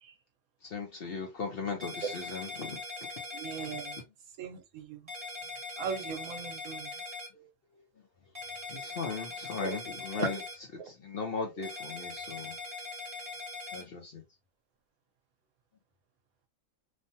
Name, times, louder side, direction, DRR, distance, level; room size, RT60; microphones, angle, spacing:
voice 1, 0.7-2.8 8.7-10.4 11.0-12.5 13.7-14.1, left 5 dB, 55° left, 0.8 m, -37 dB
sound 1, 1.8-4.0 5.1-7.3 8.3-10.5 11.6-13.8, left 2 dB, 25° right, 1.3 m, -41 dB
voice 2, 3.3-4.0 4.4-5.0 5.8-6.9 9.6-9.8 10.1-10.4, right 6 dB, 75° right, 1.1 m, -38 dB
3.2 x 2.2 x 2.7 m
omnidirectional pair, 1.5 m